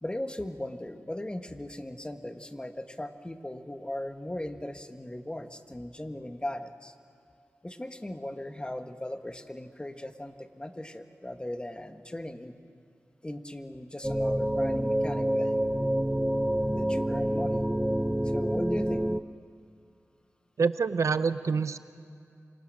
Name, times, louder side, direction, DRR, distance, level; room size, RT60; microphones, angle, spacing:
voice 1, 0.0-6.9 7.6-12.5 13.2-15.5 16.7-17.7 18.3-19.0, left 1 dB, 20° left, 7 dB, 1.4 m, -38 dB
sound 1, 14.0-19.2, right 1 dB, 10° right, 0.6 m, -27 dB
voice 2, 20.6-21.8, right 5 dB, 75° right, 13 dB, 0.7 m, -26 dB
28.0 x 25.5 x 6.4 m, 2.4 s
wide cardioid pair, 75°, 5 cm